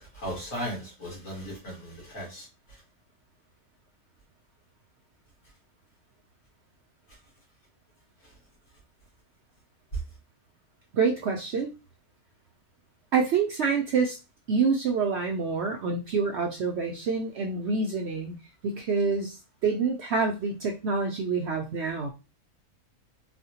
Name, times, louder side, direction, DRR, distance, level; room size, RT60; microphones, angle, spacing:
voice 1, 0.2-2.4, equal, 65° left, 2.1 m, -36 dB
voice 2, 10.9-11.7 13.1-14.2 14.5-18.4 18.6-19.4 19.6-22.1, right 5 dB, 65° right, 0.6 m, -27 dB
4.1 x 2.1 x 2.8 m
omnidirectional pair, 1.5 m